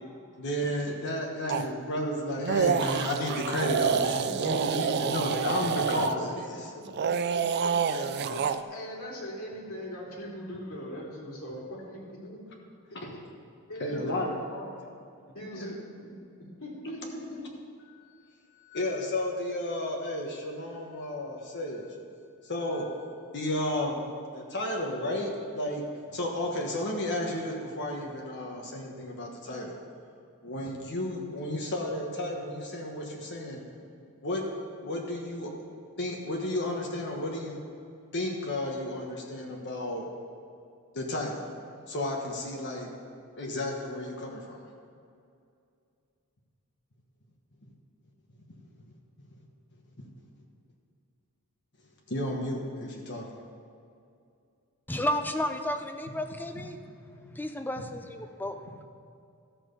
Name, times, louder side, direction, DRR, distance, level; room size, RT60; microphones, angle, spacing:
voice 1, 0.4-6.7 13.0-13.1 13.8-14.4 15.5-15.7 18.6-21.9 22.4-22.9 23.3-24.0 24.3-25.8 26.1-29.8 30.4-33.6 34.2-34.4 34.8-35.5 36.0-37.6 38.1-40.1 40.9-41.4 41.9-42.9 43.4-44.7 50.0-50.1 52.1-53.3, left 1 dB, 50° left, 0 dB, 1.3 m, -32 dB
sound 1, 1.5-1.7 2.4-6.1 6.9-8.6, right 6 dB, 50° right, 0.4 m, -28 dB
voice 2, 4.2-5.2 5.9-6.3 6.7-12.4 13.1-13.2 13.7-14.7 15.3-16.1 16.6-17.5, equal, 70° left, -4 dB, 2.6 m, -41 dB
voice 3, 54.9-56.8 57.3-58.6, left 1 dB, 10° left, 6 dB, 0.6 m, -32 dB
13.5 x 6.0 x 6.8 m, 2.4 s
head